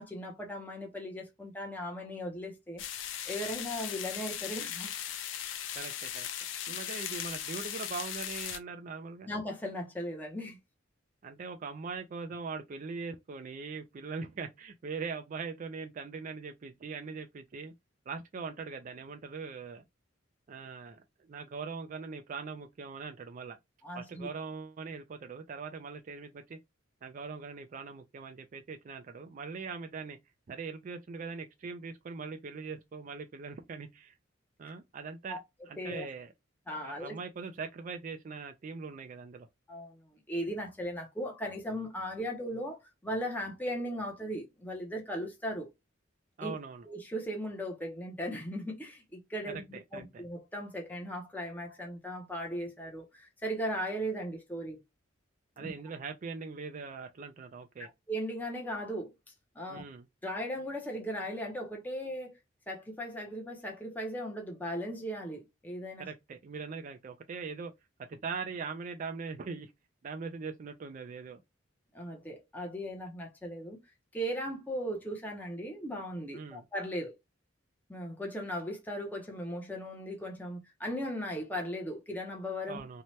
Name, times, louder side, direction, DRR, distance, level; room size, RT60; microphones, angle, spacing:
voice 1, 0.0-2.8 3.3-4.9 9.3-10.6 23.8-24.3 35.3-35.4 35.8-36.1 36.7-37.2 39.7-40.0 40.3-45.7 46.4-46.5 46.9-54.8 55.6-55.7 57.8-59.1 59.6-59.8 60.2-62.3 62.7-66.1 71.9-73.8 74.1-77.1 77.9-82.8, equal, 10° left, 0.6 m, -37 dB
sound 1, 2.8-8.6, left 10 dB, 70° left, 0.4 m, -38 dB
voice 2, 5.7-6.3 6.7-9.3 11.2-17.7 18.1-19.8 20.5-23.6 23.9-26.6 27.0-30.2 30.5-34.2 34.6-36.3 36.8-39.5 46.4-46.9 49.5-50.2 55.6-57.9 59.7-60.1 66.0-67.7 68.0-69.7 70.0-71.4 76.3-76.6 82.7-83.0, right 5 dB, 40° right, 0.3 m, -41 dB
2.8 x 2.1 x 3.0 m
head